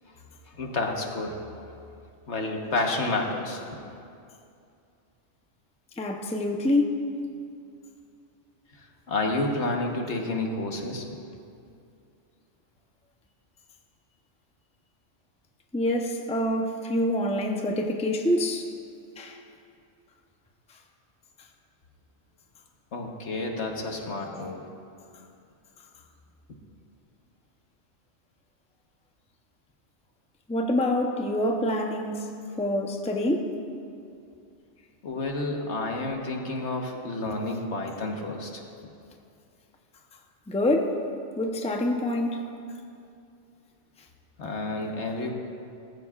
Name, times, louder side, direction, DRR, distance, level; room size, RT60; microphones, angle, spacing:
voice 1, 0.5-1.3 2.3-3.6 9.1-11.0 22.9-24.7 35.0-38.6 44.4-45.3, left 2 dB, 65° left, 1.5 m, -30 dB
voice 2, 6.0-7.0 15.7-18.7 19.2-19.4 30.5-32.3 32.6-33.5 40.5-41.0 41.4-42.4, left 1 dB, 5° left, 0.6 m, -26 dB
18.5 x 14.5 x 2.4 m
omnidirectional pair, 1.3 m